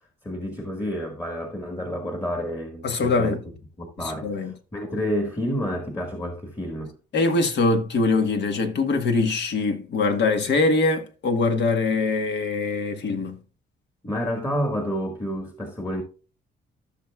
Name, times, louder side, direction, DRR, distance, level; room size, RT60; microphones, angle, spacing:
voice 1, 0.2-3.4 3.8-6.9 14.0-16.0, equal, 15° left, 1.6 m, -29 dB
voice 2, 2.8-3.4 4.0-4.5 7.1-13.4, left 3 dB, 60° left, 1.4 m, -23 dB
14.0 x 6.1 x 2.3 m
cardioid pair, 90°, 20 cm